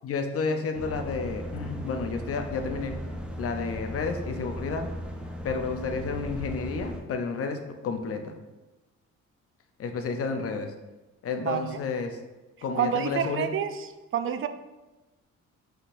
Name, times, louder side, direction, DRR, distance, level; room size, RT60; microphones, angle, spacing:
voice 1, 0.0-2.9 3.4-4.9 5.4-8.3 9.8-10.7 11.2-12.2 12.6-13.5, left 4 dB, 50° left, 6 dB, 0.6 m, -31 dB
sound 1, 0.7-7.0, equal, 5° right, 0.6 m, -37 dB
voice 2, 11.4-11.7 12.7-14.5, right 8 dB, 45° right, 10 dB, 0.4 m, -28 dB
5.4 x 3.7 x 2.5 m, 1.1 s
cardioid pair, 90°, 30 cm